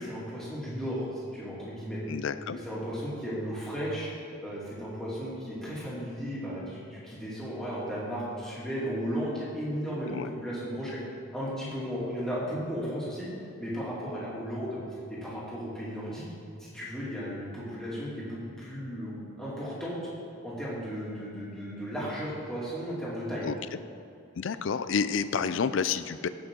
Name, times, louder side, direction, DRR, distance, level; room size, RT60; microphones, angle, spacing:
voice 1, 0.0-2.0 2.5-4.1 4.4-11.0 11.3-13.3 13.6-14.8 15.1-16.2 16.6-20.0 20.4-23.5, equal, ahead, -8 dB, 2.5 m, -35 dB
voice 2, 2.1-2.6 10.1-10.3 23.4-23.6 24.4-26.3, left 6 dB, 65° left, 13 dB, 0.4 m, -29 dB
16.0 x 6.2 x 3.8 m, 2.6 s
head